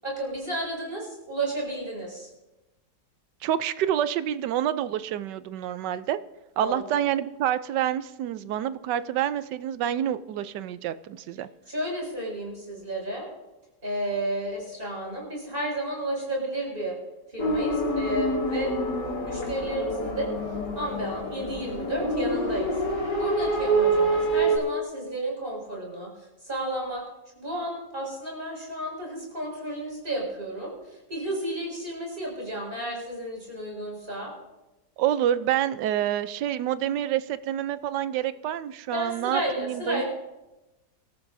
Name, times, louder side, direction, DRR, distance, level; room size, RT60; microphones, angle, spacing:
voice 1, 0.0-2.3 6.6-6.8 11.7-13.3 13.8-17.0 17.3-18.7 19.2-20.3 20.7-22.8 23.2-27.0 27.3-34.3 38.9-40.0, right 1 dB, 30° right, -2 dB, 6.3 m, -32 dB
voice 2, 3.4-6.2 6.6-11.5 35.0-40.0, right 11 dB, 75° right, 14 dB, 1.2 m, -27 dB
sound 1, 17.4-24.6, right 1 dB, 75° left, 3.2 m, -26 dB
26.5 x 13.5 x 2.7 m, 1.0 s
omnidirectional pair, 1.9 m